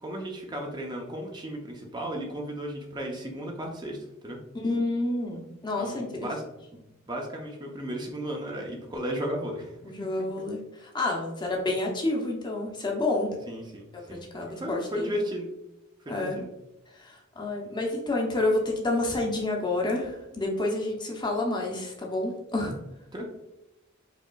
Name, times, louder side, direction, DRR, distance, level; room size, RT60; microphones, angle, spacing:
voice 1, 0.0-4.0 4.2-4.4 5.8-6.4 6.7-9.9 10.2-10.3 13.5-15.5 16.1-16.5 23.1-23.2, equal, 20° right, 0 dB, 0.5 m, -35 dB
voice 2, 4.5-6.3 9.8-13.3 14.1-15.1 16.1-16.4 17.0-22.7, left 2 dB, 20° left, 0 dB, 0.6 m, -29 dB
4.9 x 2.9 x 2.2 m, 0.92 s
head